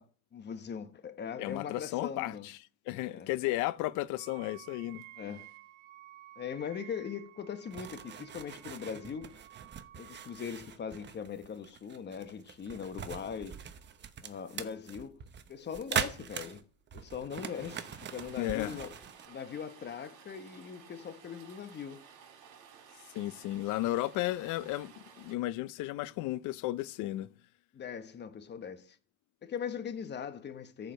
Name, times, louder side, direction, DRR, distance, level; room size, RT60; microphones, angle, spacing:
voice 1, 0.0-2.5 3.1-3.3 5.2-5.5 6.4-9.4 10.0-13.6 14.2-15.2 15.5-16.6 16.9-19.0 19.3-22.0 27.7-29.0 29.4-30.9, left 7 dB, 30° left, 1.2 m, -40 dB
voice 2, 1.4-2.6 2.9-5.0 18.4-18.8 23.1-27.3, left 16 dB, 60° left, 0.6 m, -34 dB
Wind instrument woodwind instrument, 4.1-10.5, right 15 dB, 85° right, 1.2 m, -54 dB
sound 1, 7.7-19.3, right 8 dB, 30° right, 0.9 m, -41 dB
Rain, 17.3-25.3, right 7 dB, 65° right, 3.7 m, -55 dB
14.0 x 5.0 x 6.3 m
supercardioid pair, 110°, 35 cm